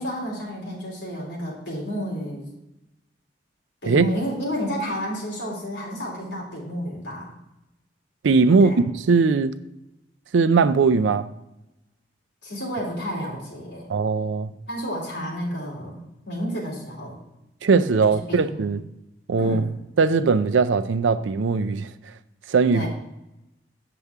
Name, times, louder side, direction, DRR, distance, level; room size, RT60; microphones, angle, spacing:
voice 1, 0.0-2.5 3.8-7.3 8.5-8.8 12.4-13.9 14.7-17.2 18.3-18.6 19.4-19.7 22.7-22.9, equal, 65° left, 3.2 m, -31 dB
voice 2, 8.2-8.7 9.1-9.5 10.3-11.3 13.9-14.5 17.6-18.8 19.3-19.7 20.0-21.9 22.5-22.9, right 4 dB, 85° right, 0.5 m, -19 dB
8.0 x 6.9 x 3.5 m
head